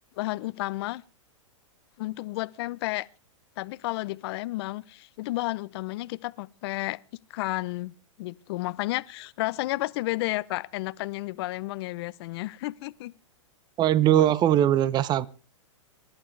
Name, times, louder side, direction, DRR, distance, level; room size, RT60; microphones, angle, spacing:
voice 1, 0.2-1.0 2.0-3.1 3.6-7.0 7.3-7.9 8.2-13.1, left 19 dB, 50° left, 0.7 m, -32 dB
voice 2, 13.8-15.3, right 11 dB, 25° right, 0.7 m, -21 dB
26.0 x 11.5 x 3.3 m
hypercardioid pair, 125°, 17 cm